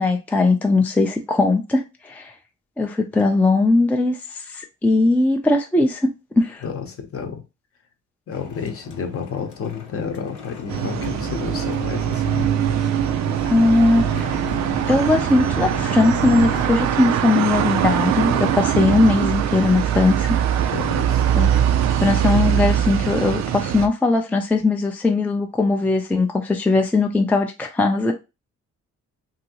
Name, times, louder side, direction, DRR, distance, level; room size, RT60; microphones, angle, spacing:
voice 1, 0.0-2.3 2.8-4.2 4.5-6.1 6.4-6.6 13.5-14.4 14.9-20.3 21.4-21.6 21.9-28.1, left 2 dB, 5° left, 0.4 m, -19 dB
voice 2, 6.6-7.4 8.3-12.4 20.7-21.3, left 6 dB, 50° left, 0.8 m, -31 dB
sound 1, 8.3-16.7, left 6 dB, 85° left, 0.8 m, -36 dB
sound 2, 10.7-23.9, right 10 dB, 65° right, 0.4 m, -22 dB
2.8 x 2.6 x 2.8 m
cardioid pair, 90°, 30 cm